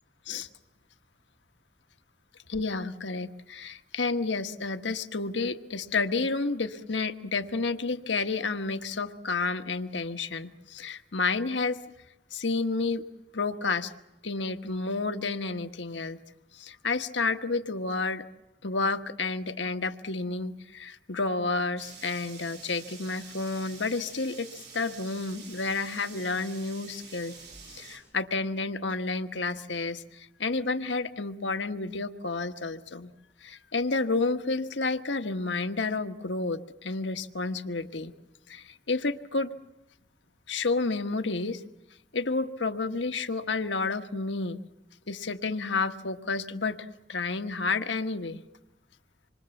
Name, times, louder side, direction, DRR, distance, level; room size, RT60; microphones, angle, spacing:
voice 1, 2.5-11.8 12.3-13.0 13.3-13.9 14.2-16.2 16.5-18.2 18.6-27.4 27.7-33.1 33.4-38.1 38.5-39.5 40.5-41.6 42.1-44.6 45.1-48.4, left 3 dB, 90° left, 8 dB, 1.4 m, -30 dB
sound 1, 21.8-28.0, right 5 dB, 65° right, 7.0 m, -47 dB
26.5 x 23.5 x 7.2 m, 0.95 s
head